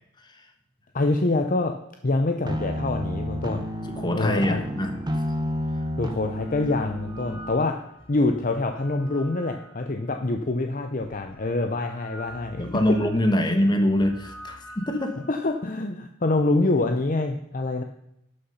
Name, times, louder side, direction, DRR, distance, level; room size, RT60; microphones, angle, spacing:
voice 1, 0.9-1.7 2.0-3.6 4.1-4.6 6.0-7.7 8.1-12.6 15.3-17.8, left 2 dB, 40° left, 5 dB, 0.7 m, -25 dB
sound 1, 2.5-7.6, equal, 20° right, 1.0 m, -31 dB
voice 2, 4.0-4.9 12.6-15.1, left 1 dB, 20° left, 5 dB, 1.4 m, -23 dB
sound 2, 4.9-5.0 6.0-10.3 11.0-15.7, equal, 80° left, 3.7 m, -47 dB
12.0 x 6.6 x 5.6 m, 0.79 s
head